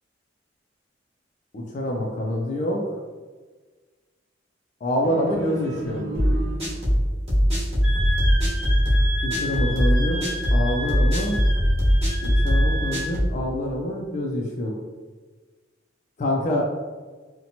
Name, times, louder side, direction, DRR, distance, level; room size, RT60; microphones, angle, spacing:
voice 1, 1.5-2.8 4.8-6.0 9.2-10.2 10.5-11.4 12.2-14.7 16.2-16.6, left 1 dB, 40° left, -1 dB, 0.3 m, -26 dB
sound 1, 5.0-7.1, right 1 dB, 70° right, 0.4 m, -34 dB
sound 2, 6.1-13.4, equal, 30° right, 1.0 m, -21 dB
Wind instrument woodwind instrument, 7.8-13.1, equal, 5° right, 0.6 m, -32 dB
2.7 x 2.1 x 2.7 m, 1.4 s
head